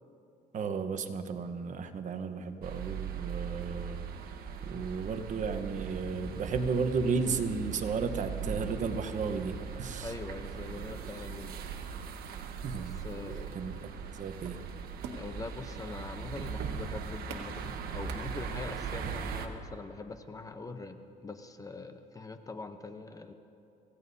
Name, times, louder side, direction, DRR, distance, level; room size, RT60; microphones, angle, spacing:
voice 1, 0.5-4.1 4.6-10.1 12.4-13.0 13.5-13.7 14.0-14.6, right 5 dB, 45° right, 8 dB, 1.1 m, -34 dB
sound 1, 2.6-19.5, right 6 dB, 65° right, 1.3 m, -39 dB
voice 2, 10.0-11.6 12.8-13.6 15.2-23.3, left 3 dB, 20° left, 8 dB, 0.8 m, -43 dB
sound 2, 14.4-18.9, right 5 dB, 85° right, 1.8 m, -48 dB
26.5 x 16.5 x 2.8 m, 2.8 s
cardioid pair, 110°, 17 cm